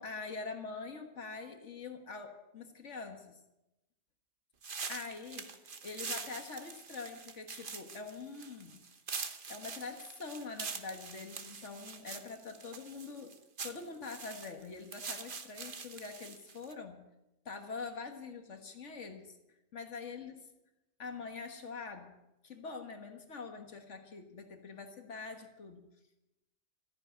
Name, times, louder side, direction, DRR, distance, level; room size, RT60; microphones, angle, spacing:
voice 1, 0.0-3.4 4.9-5.6 5.8-8.8 9.5-13.3 13.6-17.0 17.5-19.4 19.7-20.5 21.0-22.1 22.4-25.9, left 4 dB, 75° left, 5 dB, 1.8 m, -44 dB
sound 1, 4.6-16.7, right 5 dB, 45° right, 1.3 m, -44 dB
14.0 x 9.8 x 9.4 m, 0.94 s
omnidirectional pair, 1.2 m